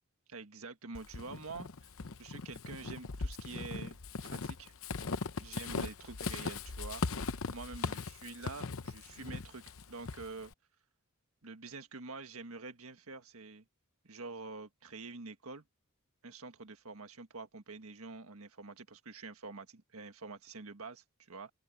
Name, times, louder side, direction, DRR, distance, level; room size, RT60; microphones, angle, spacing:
voice 1, 0.3-1.9 2.2-4.0 4.2-4.7 5.3-10.5 11.4-13.6 14.0-15.6 16.2-21.5, right 3 dB, 70° right, 1.7 m, -47 dB
Walk footsteps / Squeak, 0.9-10.5, left 4 dB, 65° left, 0.9 m, -39 dB
open air
head